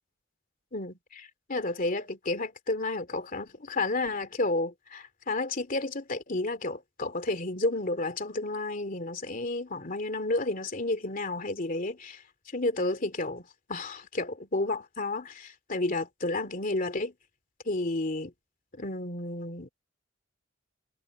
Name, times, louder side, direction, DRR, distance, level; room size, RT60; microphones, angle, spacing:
voice 1, 0.7-12.2 12.5-13.4 13.7-17.1 17.6-18.3 18.8-19.7, left 2 dB, 45° left, 2.7 m, -31 dB
head